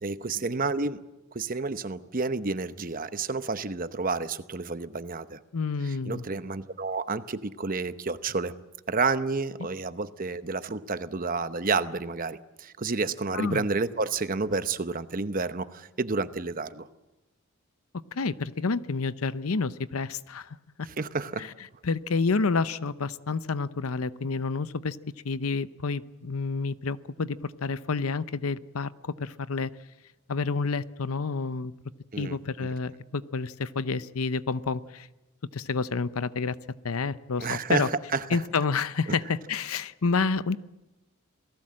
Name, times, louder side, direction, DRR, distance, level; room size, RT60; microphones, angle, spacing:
voice 1, 0.0-1.0 1.3-5.4 5.9-8.5 8.9-16.9 21.0-21.5 32.1-32.4 37.4-38.4, right 4 dB, 40° right, 12 dB, 0.9 m, -30 dB
voice 2, 5.5-6.2 13.3-13.7 18.1-20.9 21.4-21.5 21.8-25.0 25.2-29.7 30.3-31.7 32.2-35.1 35.5-36.6 36.8-37.9 38.3-40.6, left 4 dB, 80° left, 15 dB, 0.7 m, -29 dB
27.5 x 18.5 x 7.6 m, 1.0 s
head